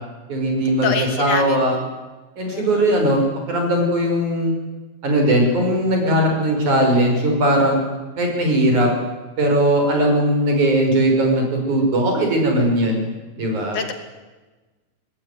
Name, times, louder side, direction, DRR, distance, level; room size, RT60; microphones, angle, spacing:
voice 1, 0.3-0.9 1.2-1.7 2.4-3.2 3.5-4.5 5.0-7.8 8.2-8.9 9.4-13.0 13.4-13.8, right 1 dB, 70° right, 2 dB, 7.4 m, -18 dB
voice 2, 0.8-1.8 2.5-3.0 13.7-13.9, left 6 dB, 75° left, 6 dB, 4.3 m, -26 dB
25.0 x 19.5 x 9.7 m, 1.2 s
omnidirectional pair, 3.6 m